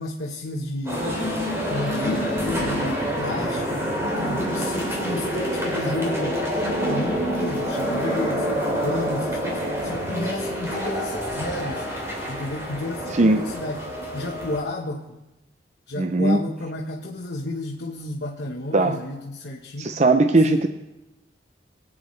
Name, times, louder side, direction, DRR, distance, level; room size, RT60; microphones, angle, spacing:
voice 1, 0.0-3.9 4.1-6.5 6.9-8.5 8.8-11.8 12.3-13.8 14.1-15.2 15.9-20.0 20.4-20.6, left 2 dB, 70° left, -2 dB, 1.1 m, -32 dB
sound 1, 0.9-14.6, equal, 15° right, 2.5 m, -27 dB
voice 2, 13.1-13.4 16.0-16.4 18.7-19.0 19.8-20.7, right 2 dB, 40° right, 7 dB, 0.5 m, -19 dB
24.5 x 8.7 x 3.2 m, 1.0 s
head